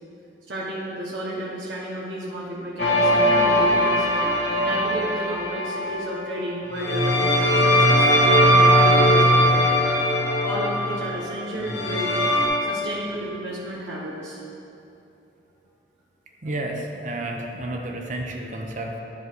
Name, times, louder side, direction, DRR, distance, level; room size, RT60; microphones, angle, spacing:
voice 1, 0.5-4.0 4.6-9.6 10.4-12.1 12.6-14.4, right 1 dB, 80° right, -7 dB, 1.3 m, -32 dB
sound 1, 2.8-6.1 6.7-12.5, equal, 85° left, 1.8 m, -19 dB
voice 2, 16.4-19.0, right 1 dB, 45° right, 2 dB, 0.7 m, -31 dB
10.5 x 5.4 x 4.6 m, 2.8 s
head